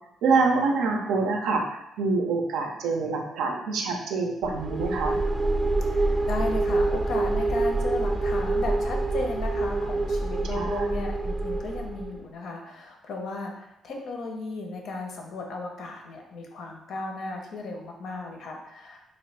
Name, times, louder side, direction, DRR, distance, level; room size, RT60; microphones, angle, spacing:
voice 1, 0.2-5.2 10.5-10.8, right 4 dB, 85° right, 3 dB, 0.5 m, -26 dB
sound 1, 4.4-12.2, right 2 dB, 25° right, 0.5 m, -26 dB
voice 2, 5.8-19.1, left 3 dB, 70° left, 2 dB, 0.6 m, -35 dB
2.9 x 2.5 x 3.2 m, 0.83 s
cardioid pair, 90°, 0 cm